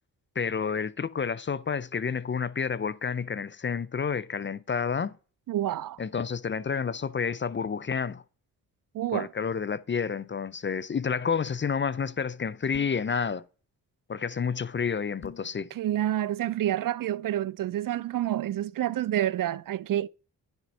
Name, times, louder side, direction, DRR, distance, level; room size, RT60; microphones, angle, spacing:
voice 1, 0.4-5.1 6.0-8.2 9.1-13.4 14.1-15.7, left 6 dB, 30° left, 0.5 m, -30 dB
voice 2, 5.5-6.0 8.9-9.3 15.7-20.1, right 12 dB, 55° right, 0.4 m, -28 dB
sound 1, 12.7-13.1 15.2-15.5, left 7 dB, 50° left, 2.3 m, -46 dB
9.7 x 4.3 x 5.4 m
supercardioid pair, 45°, 42 cm